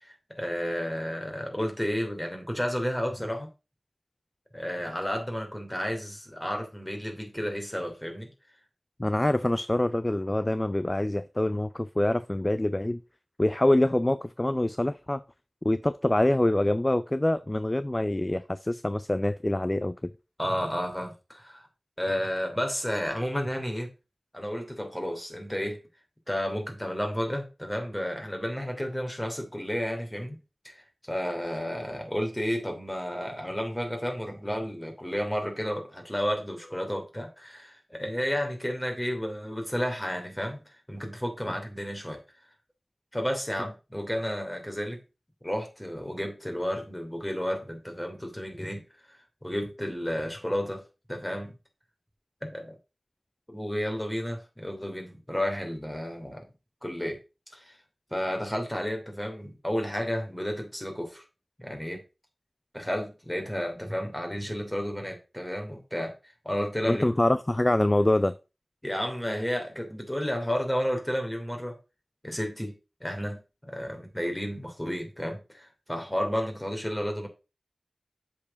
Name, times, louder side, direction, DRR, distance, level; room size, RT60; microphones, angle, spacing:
voice 1, 0.0-3.5 4.5-8.3 20.4-21.7 22.0-23.9 24.3-25.8 26.3-30.4 30.6-42.2 43.1-45.0 45.4-48.8 49.1-50.8 51.1-51.5 52.4-52.8 53.5-56.5 56.8-57.2 57.5-57.8 58.1-61.2 61.6-62.0 62.7-66.1 66.4-67.0 68.8-71.8 72.2-72.7 73.0-77.3, equal, 10° left, 2.9 m, -32 dB
voice 2, 9.0-13.0 13.4-15.2 15.6-20.1 66.9-68.3, left 1 dB, 25° left, 0.4 m, -25 dB
7.4 x 4.7 x 5.3 m
wide cardioid pair, 50°, 0 cm